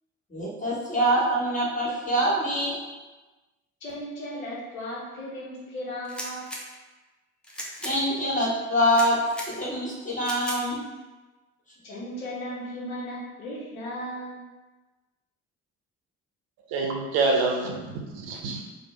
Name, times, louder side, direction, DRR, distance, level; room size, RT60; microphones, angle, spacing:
voice 1, 0.3-2.8 7.8-10.8, equal, 20° left, -7 dB, 1.5 m, -25 dB
voice 2, 3.8-6.5 11.8-14.4, equal, 90° left, -5 dB, 0.7 m, -36 dB
sound 1, 6.0-6.6 7.4-7.9 8.9-9.5 10.2-10.6, equal, ahead, 0.6 m, -36 dB
voice 3, 16.7-18.6, right 3 dB, 65° right, 1 dB, 0.6 m, -26 dB
3.2 x 2.1 x 3.1 m, 1.2 s
figure-of-eight pair, 45°, 40 cm